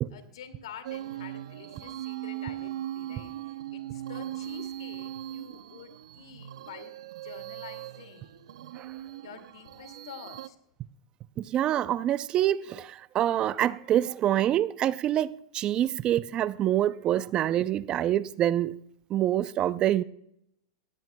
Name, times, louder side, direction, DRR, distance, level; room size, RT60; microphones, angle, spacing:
voice 1, 0.1-8.7 9.2-10.6, left 8 dB, 85° left, 2.3 m, -48 dB
sound 1, 0.8-10.5, right 13 dB, 85° right, 0.6 m, -39 dB
voice 2, 11.4-18.8 19.1-20.0, right 12 dB, 30° right, 0.4 m, -26 dB
17.5 x 16.0 x 2.2 m
supercardioid pair, 130°, 3 cm